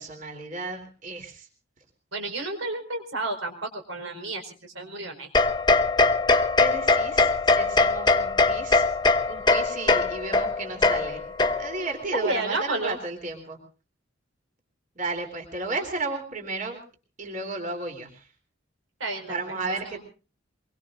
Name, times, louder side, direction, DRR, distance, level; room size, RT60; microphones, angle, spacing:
voice 1, 0.0-1.5 6.6-8.9 9.3-11.2 11.5-13.6 15.0-16.8 17.2-18.3 19.3-20.0, right 3 dB, 40° right, 4 dB, 3.6 m, -33 dB
voice 2, 2.1-5.3 12.1-13.0 19.0-19.4 19.9-20.0, right 2 dB, 85° right, 4 dB, 4.7 m, -31 dB
sound 1, 5.3-11.9, left 3 dB, 20° left, 0.9 m, -22 dB
24.0 x 23.0 x 2.6 m, 0.37 s
head